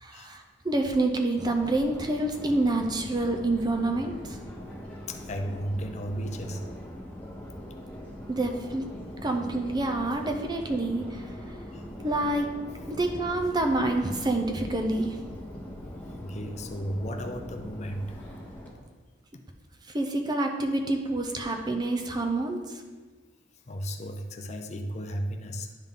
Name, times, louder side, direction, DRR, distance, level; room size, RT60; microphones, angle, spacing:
voice 1, 0.0-4.4 8.3-8.9 9.2-11.3 12.0-12.5 12.9-15.2 19.9-22.8, right 2 dB, 20° right, 4 dB, 0.5 m, -27 dB
Subway metro underground, 1.4-18.7, equal, 10° left, 1.1 m, -42 dB
voice 2, 5.1-6.7 11.7-11.8 16.0-18.2 23.7-25.7, equal, 35° left, 5 dB, 0.5 m, -34 dB
10.5 x 3.8 x 3.6 m, 1.4 s
head